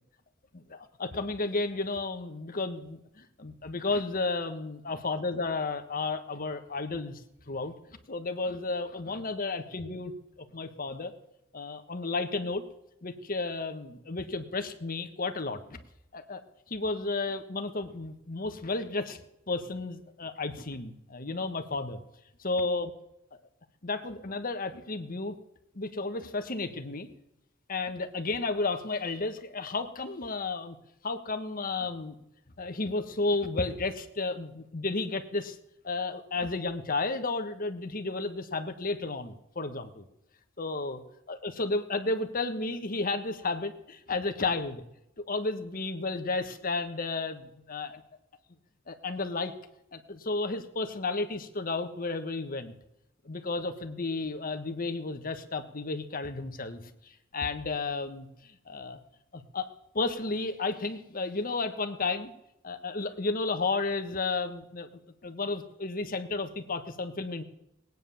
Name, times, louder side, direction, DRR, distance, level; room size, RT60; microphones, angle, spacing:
voice 1, 0.5-7.2 7.5-7.7 8.1-10.1 10.4-11.1 11.5-12.6 13.0-15.8 16.1-16.4 16.7-19.2 19.5-22.0 22.4-22.9 23.8-25.4 25.7-27.1 27.7-30.8 31.0-32.2 32.6-35.6 35.8-40.0 40.6-41.0 41.3-44.8 45.3-48.0 48.9-49.5 49.9-52.7 53.2-59.0 59.3-59.7 59.9-62.3 62.6-67.4, left 3 dB, 45° left, 7 dB, 1.3 m, -32 dB
19.5 x 9.5 x 7.0 m, 0.84 s
head